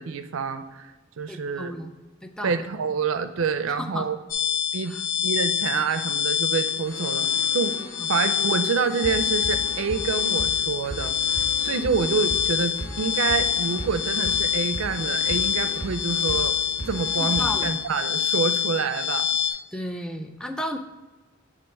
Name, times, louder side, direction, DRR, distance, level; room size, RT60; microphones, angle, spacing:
voice 1, 0.0-1.7 2.4-4.2 4.7-5.0 5.2-7.3 7.5-7.8 8.1-11.2 11.6-16.6 16.9-19.3, right 5 dB, 75° right, 9 dB, 0.4 m, -27 dB
voice 2, 1.3-1.9 2.2-2.6 3.8-4.1 4.9-5.0 8.0-8.1 17.2-17.7 19.7-20.8, equal, 5° left, 5 dB, 0.3 m, -33 dB
sound 1, 4.3-19.5, left 9 dB, 45° left, 0.6 m, -26 dB
sound 2, 6.6-17.7, equal, 85° left, 1.5 m, -37 dB
7.4 x 2.5 x 5.3 m, 1.2 s
head